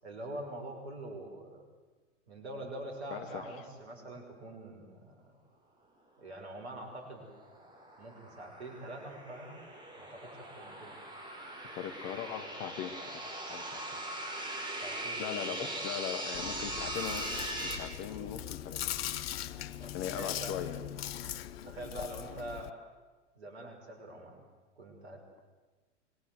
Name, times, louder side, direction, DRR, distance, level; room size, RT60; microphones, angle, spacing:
voice 1, 0.0-1.6 2.3-5.4 6.2-7.3 8.0-9.6 10.0-10.9 14.7-15.7 19.8-20.6 21.6-22.8 23.3-24.4 24.8-25.3, right 1 dB, 60° right, 3 dB, 6.1 m, -44 dB
voice 2, 3.1-3.6 11.8-14.0 15.2-18.8 19.9-20.8, left 9 dB, 35° left, 9 dB, 2.0 m, -40 dB
sound 1, 6.9-17.8, right 1 dB, 10° right, 4.9 m, -40 dB
Chewing mastication, 16.3-22.7, left 12 dB, 55° left, 1.0 m, -40 dB
25.5 x 21.0 x 7.9 m, 1.3 s
figure-of-eight pair, 95°, 36 cm